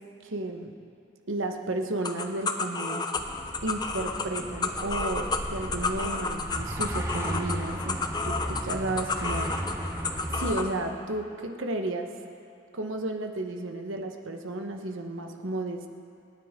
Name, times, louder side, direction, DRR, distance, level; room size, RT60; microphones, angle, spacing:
voice 1, 0.2-0.7 1.3-3.0 3.6-8.0 8.2-9.5 10.3-12.1 12.7-15.9, right 2 dB, 80° right, 4 dB, 1.1 m, -33 dB
sound 1, 2.0-10.7, left 4 dB, 20° left, 0.6 m, -31 dB
sound 2, 3.2-10.5, equal, 15° right, 0.9 m, -35 dB
27.0 x 9.9 x 3.7 m, 2.5 s
head